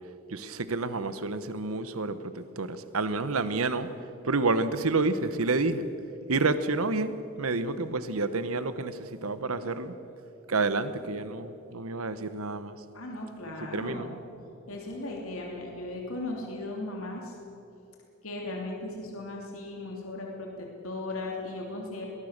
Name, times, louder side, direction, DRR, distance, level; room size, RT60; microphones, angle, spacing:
voice 1, 0.3-3.9 4.2-5.9 6.3-9.9 10.5-12.8 13.6-14.1, right 3 dB, 75° right, 12 dB, 1.1 m, -29 dB
voice 2, 12.9-14.2 14.7-17.4 18.2-22.1, left 2 dB, 70° left, -1 dB, 3.0 m, -37 dB
21.5 x 19.0 x 6.7 m, 2.9 s
head